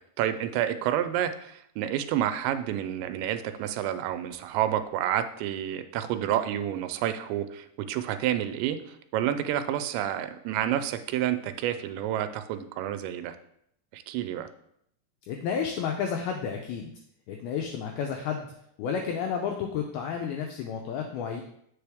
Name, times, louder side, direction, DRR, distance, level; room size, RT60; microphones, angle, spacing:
voice 1, 0.2-13.4 13.9-14.5, right 11 dB, 90° right, 10 dB, 2.8 m, -29 dB
voice 2, 15.3-16.9 17.3-18.5 18.8-21.4, left 7 dB, 90° left, 2 dB, 2.1 m, -31 dB
8.0 x 5.3 x 3.4 m, 0.74 s
omnidirectional pair, 5.0 m